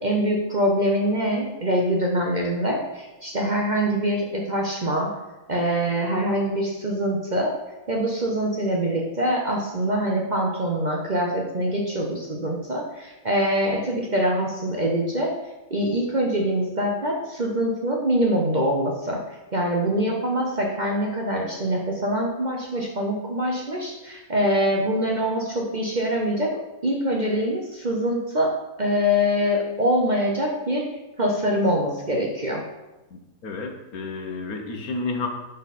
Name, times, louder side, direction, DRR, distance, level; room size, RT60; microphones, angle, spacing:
voice 1, 0.0-5.1 5.5-7.5 7.9-15.4 15.7-19.2 19.5-28.5 28.8-32.6, equal, 35° right, -1 dB, 0.8 m, -24 dB
voice 2, 33.1-35.3, left 3 dB, 75° left, 3 dB, 1.5 m, -31 dB
10.5 x 4.0 x 4.2 m, 1.0 s
omnidirectional pair, 1.6 m